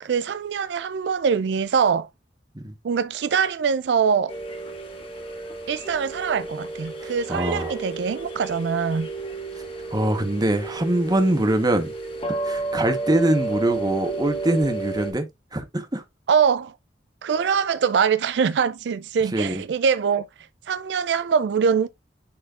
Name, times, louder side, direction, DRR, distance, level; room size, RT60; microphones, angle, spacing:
voice 1, 0.0-2.1 2.8-4.3 5.7-9.1 16.3-16.7 17.2-20.3 20.7-21.9, right 6 dB, 70° right, 0.4 m, -23 dB
sound 1, 4.3-15.1, right 3 dB, 30° left, 2.3 m, -32 dB
voice 2, 7.0-7.7 9.9-11.9 12.3-15.3 15.5-16.0 19.3-19.6, right 1 dB, 20° right, 1.1 m, -23 dB
10.0 x 4.3 x 2.4 m
head